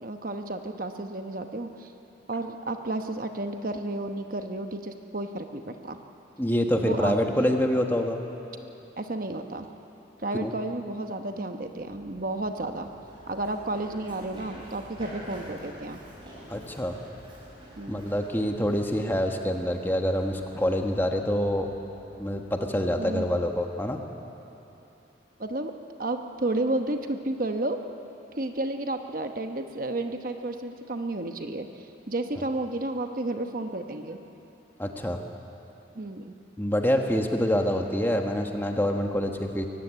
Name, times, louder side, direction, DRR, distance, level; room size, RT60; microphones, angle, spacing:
voice 1, 0.0-1.9 2.3-6.0 6.8-7.5 9.0-9.7 10.2-12.9 13.3-16.0 17.8-18.0 23.0-23.4 25.4-25.7 26.0-27.8 28.4-34.2 35.9-36.3, right 2 dB, 50° right, 6 dB, 1.0 m, -32 dB
voice 2, 6.4-8.2 10.4-10.5 16.5-17.0 17.9-21.7 22.2-24.0 34.8-35.2 36.6-39.7, equal, 10° left, 3 dB, 1.3 m, -26 dB
Run, 11.7-23.2, equal, 25° right, 5.8 m, -48 dB
22.5 x 15.5 x 10.0 m, 3.0 s
head